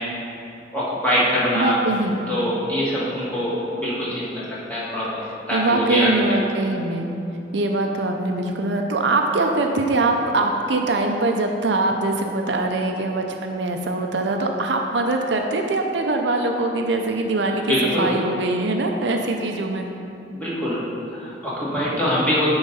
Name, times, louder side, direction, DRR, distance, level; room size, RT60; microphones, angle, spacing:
voice 1, 0.7-1.8 2.3-3.5 3.8-6.1 17.7-18.1 20.3-20.8 21.1-22.5, equal, 10° left, -9 dB, 2.0 m, -23 dB
voice 2, 1.5-2.2 5.5-7.1 7.5-19.9, right 2 dB, 70° right, 3 dB, 0.6 m, -22 dB
9.9 x 3.9 x 5.5 m, 2.7 s
head